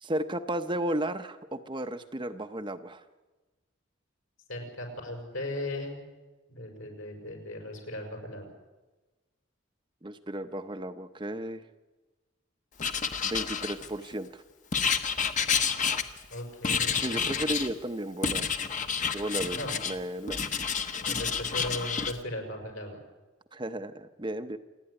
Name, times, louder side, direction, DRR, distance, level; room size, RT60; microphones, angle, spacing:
voice 1, 0.0-3.0 10.0-11.6 13.2-14.4 17.0-18.5 19.1-20.4 23.5-24.6, right 1 dB, 25° right, 8 dB, 0.8 m, -34 dB
voice 2, 4.5-6.0 6.5-8.5 16.3-16.9 17.3-17.4 19.5-19.8 21.1-23.0, left 1 dB, 75° left, 3 dB, 5.8 m, -37 dB
Writing, 12.8-14.1 14.7-16.3 16.6-17.7 18.2-20.0 20.3-22.1, left 6 dB, 35° left, 1.1 m, -29 dB
28.0 x 9.9 x 10.0 m, 1.2 s
head